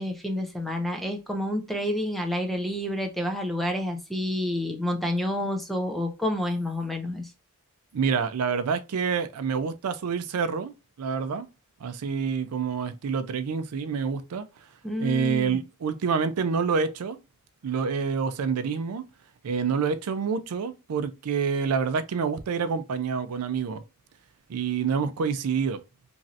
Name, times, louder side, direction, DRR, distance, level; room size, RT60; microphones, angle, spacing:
voice 1, 0.0-7.3 14.8-15.6, left 1 dB, ahead, 0.5 m, -29 dB
voice 2, 7.9-10.7 11.0-11.5 11.8-14.5 15.0-17.2 17.6-19.0 19.4-23.8 24.5-25.8, right 6 dB, 80° right, 0.4 m, -27 dB
3.1 x 2.6 x 2.5 m
head